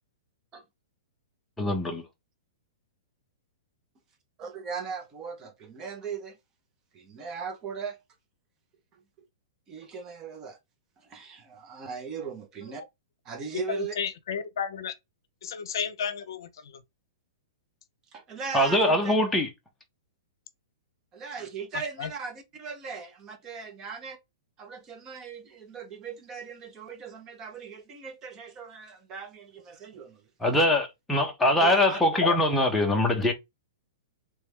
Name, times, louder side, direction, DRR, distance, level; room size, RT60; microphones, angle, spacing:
voice 1, 1.6-2.0 18.5-19.5 30.4-33.3, left 1 dB, 5° left, 0.9 m, -23 dB
voice 2, 4.4-6.4 6.9-8.0 8.9-9.3 9.7-10.6 11.0-12.8 13.2-13.9 18.1-19.1 21.1-24.2 24.6-30.2 31.6-32.0, right 5 dB, 20° right, 0.9 m, -39 dB
voice 3, 13.7-14.9 15.4-16.8 22.0-22.1 32.2-32.4, left 7 dB, 70° left, 0.7 m, -32 dB
3.4 x 3.2 x 3.4 m
hypercardioid pair, 160°, 2 cm